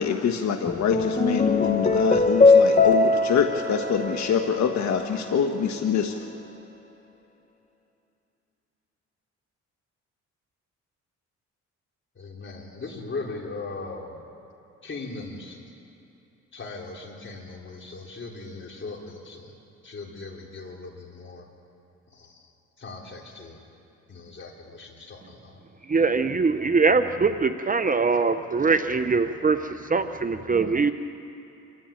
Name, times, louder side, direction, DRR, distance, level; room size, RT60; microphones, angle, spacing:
voice 1, 0.0-6.3, left 7 dB, 65° left, 5 dB, 1.4 m, -25 dB
sound 1, 0.7-5.2, left 3 dB, 25° left, 1.2 m, -21 dB
voice 2, 12.1-14.3 14.8-15.6 16.5-19.6 19.8-21.5 22.1-22.5 22.8-23.6 24.1-25.6, left 3 dB, 40° left, -1 dB, 4.2 m, -39 dB
voice 3, 25.9-30.9, right 4 dB, 25° right, 9 dB, 0.9 m, -22 dB
27.5 x 14.0 x 9.0 m, 2.9 s
cardioid pair, 90°, 30 cm